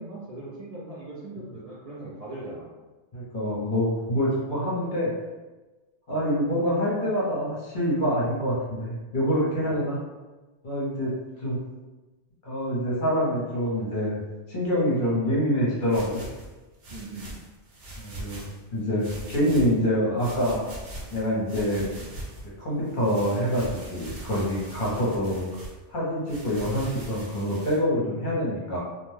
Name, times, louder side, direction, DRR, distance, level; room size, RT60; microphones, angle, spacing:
voice 1, 0.0-2.7 6.1-6.3 9.6-9.8 16.9-17.4 21.8-22.0 24.9-25.1, right 2 dB, 45° right, -9 dB, 0.5 m, -40 dB
voice 2, 3.1-5.1 6.1-10.0 10.6-11.1 11.4-11.6 12.4-14.2 14.5-16.2 18.0-20.6 21.1-21.9 22.6-25.5 25.9-28.8, equal, 50° left, -6 dB, 0.9 m, -26 dB
sound 1, 15.8-18.6 19.0-19.8 20.2-22.5 22.9-25.7 26.3-27.8, right 1 dB, 80° right, 1.0 m, -41 dB
2.5 x 2.1 x 3.2 m, 1.2 s
omnidirectional pair, 1.2 m